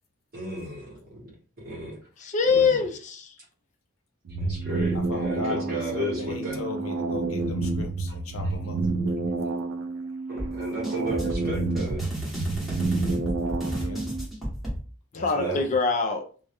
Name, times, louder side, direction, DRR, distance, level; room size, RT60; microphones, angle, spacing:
voice 1, 0.3-1.0 1.7-1.9 2.5-2.8 4.4-6.6 10.3-12.0 15.3-15.6, right 1 dB, 45° right, -5 dB, 0.8 m, -33 dB
voice 2, 2.2-3.4 15.1-16.3, left 4 dB, 35° left, 5 dB, 0.3 m, -24 dB
sound 1, 4.3-14.3, right 3 dB, 65° right, 0.3 m, -29 dB
voice 3, 4.9-8.8 13.7-14.0 15.1-15.6, left 2 dB, 75° left, 4 dB, 0.6 m, -36 dB
sound 2, 10.4-14.8, equal, ahead, 0.7 m, -33 dB
2.2 x 2.0 x 2.8 m, 0.40 s
head